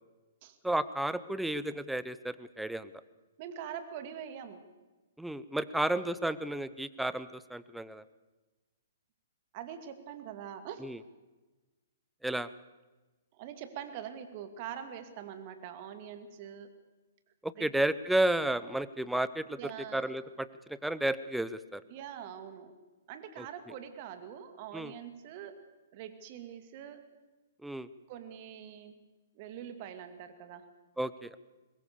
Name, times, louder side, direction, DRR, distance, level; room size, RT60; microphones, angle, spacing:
voice 1, 0.6-2.9 5.2-8.0 10.8-11.0 12.2-12.5 17.4-19.6 19.9-21.8 23.4-23.5 24.7-24.9 27.6-27.9 31.0-31.4, right 1 dB, 5° right, 15 dB, 0.8 m, -32 dB
voice 2, 3.4-4.6 5.7-5.8 9.5-10.9 13.3-16.7 17.6-17.7 19.6-20.1 21.9-22.7 23.1-25.6 25.9-27.0 28.1-29.0 29.3-30.7, right 9 dB, 40° right, 9 dB, 2.4 m, -44 dB
22.5 x 20.5 x 6.9 m, 1.2 s
figure-of-eight pair, 120°, 0 cm